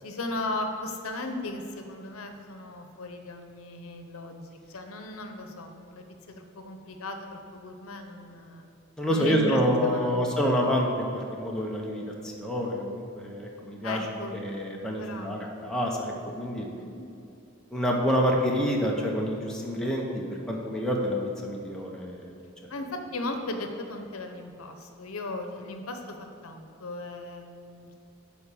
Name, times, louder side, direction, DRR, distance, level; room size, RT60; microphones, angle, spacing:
voice 1, 0.0-8.7 9.1-10.2 13.8-14.3 15.0-15.5 16.8-17.0 22.7-27.9, left 2 dB, 80° left, 5 dB, 0.8 m, -37 dB
voice 2, 9.0-14.0 14.3-16.7 17.7-22.3, equal, 5° left, -2 dB, 0.9 m, -28 dB
9.5 x 4.3 x 6.8 m, 2.6 s
head